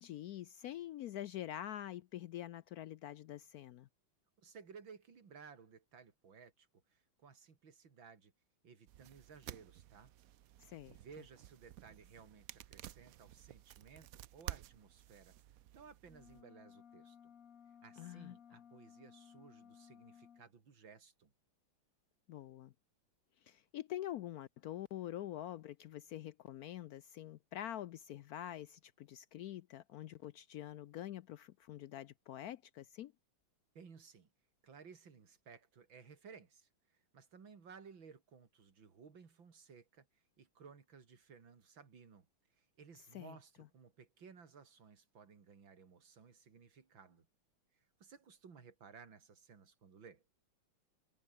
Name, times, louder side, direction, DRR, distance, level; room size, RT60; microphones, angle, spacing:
voice 1, 0.0-3.9 10.6-11.0 18.0-18.4 22.3-22.7 23.4-33.1 43.1-43.4, left 12 dB, 85° left, 0.8 m, -46 dB
voice 2, 4.4-8.3 8.6-10.1 10.6-15.4 15.7-17.3 17.8-21.3 33.8-34.3 34.6-40.1 40.4-42.3 42.6-47.3 47.7-50.2, right 6 dB, 65° right, 3.5 m, -58 dB
sound 1, 8.9-16.4, right 13 dB, 90° right, 0.7 m, -52 dB
sound 2, 16.0-20.5, left 8 dB, 45° left, 1.4 m, -60 dB
omnidirectional pair, 2.3 m